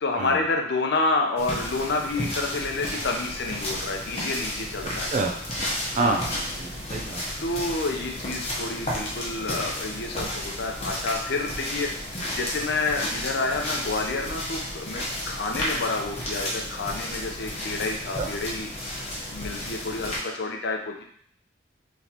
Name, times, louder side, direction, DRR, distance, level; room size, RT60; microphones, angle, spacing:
voice 1, 0.0-5.1 5.9-6.2 7.4-11.9 12.3-18.7 19.3-21.0, left 3 dB, 65° left, 2 dB, 0.7 m, -29 dB
sound 1, 1.4-20.2, left 1 dB, 35° left, 1.0 m, -33 dB
voice 2, 6.0-6.3 6.6-7.2 18.2-18.3, right 4 dB, 40° right, 1 dB, 0.4 m, -27 dB
4.1 x 3.2 x 2.9 m, 0.62 s
head